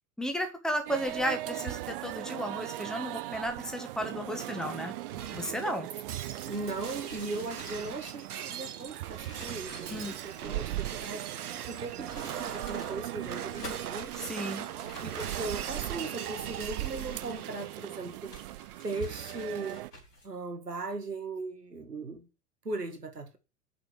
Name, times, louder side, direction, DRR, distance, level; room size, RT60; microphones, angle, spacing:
voice 1, 0.2-4.9 5.3-5.9 9.9-10.1 14.2-14.7, equal, ahead, 1.7 m, -34 dB
sound 1, 0.9-19.9, right 18 dB, 40° right, 0.4 m, -40 dB
Shatter, 4.0-19.6, right 9 dB, 70° right, 1.2 m, -41 dB
voice 2, 6.4-11.3 11.7-14.2 15.0-18.4 18.8-19.8 20.2-22.3 22.6-23.4, right 3 dB, 85° right, 1.5 m, -38 dB
sound 2, 6.5-11.3 11.9-13.0 13.4-14.1 14.8-16.0 16.6-17.9 18.3-20.3, left 1 dB, 85° left, 3.4 m, -49 dB
6.7 x 5.7 x 6.8 m
figure-of-eight pair, 90°, 47 cm